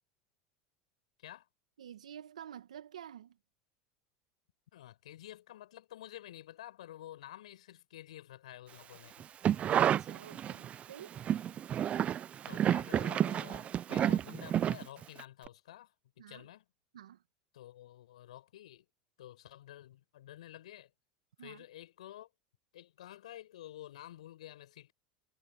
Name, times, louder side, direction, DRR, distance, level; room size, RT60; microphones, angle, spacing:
voice 1, 1.8-3.4 9.6-11.2 16.2-16.5 16.9-17.2 21.4-21.7, right 10 dB, 85° right, 2.1 m, -50 dB
voice 2, 4.7-9.3 12.5-16.6 17.5-18.9 19.2-20.9 21.4-22.3 22.7-24.9, left 13 dB, 80° left, 7.3 m, -50 dB
sound 1, 9.2-10.8 11.1-15.2 15.5-15.6, right 10 dB, 35° right, 0.6 m, -30 dB
hypercardioid pair, 90°, 4 cm